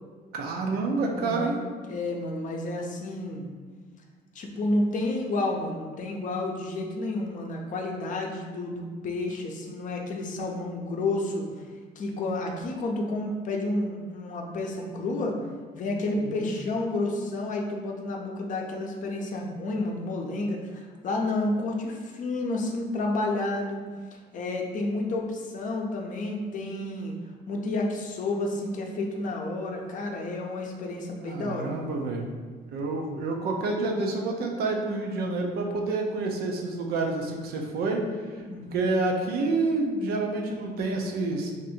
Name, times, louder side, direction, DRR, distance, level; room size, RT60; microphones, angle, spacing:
voice 1, 0.3-1.6 16.2-16.6 31.2-32.3 32.7-38.0 38.3-38.4 38.7-41.5, right 3 dB, 65° right, 1 dB, 0.6 m, -28 dB
voice 2, 1.1-1.6 1.9-3.5 4.3-11.5 12.0-15.4 15.7-23.8 24.3-27.1 27.5-31.8 38.4-38.6, left 2 dB, 50° left, 1 dB, 0.6 m, -30 dB
2.6 x 2.6 x 4.2 m, 1.5 s
cardioid pair, 110°, 17 cm